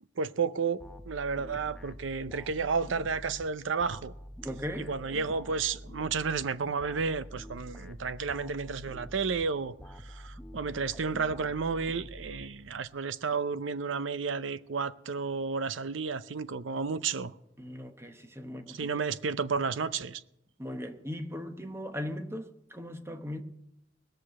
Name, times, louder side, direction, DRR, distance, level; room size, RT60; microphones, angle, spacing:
voice 1, 0.2-4.1 4.9-9.7 10.0-17.3 18.7-20.2, right 5 dB, 75° right, 0.6 m, -32 dB
sound 1, 0.8-13.0, equal, 5° left, 0.7 m, -47 dB
voice 2, 4.4-4.9 17.6-19.0 20.6-23.4, left 1 dB, 15° right, 1.0 m, -38 dB
19.5 x 6.6 x 7.5 m
head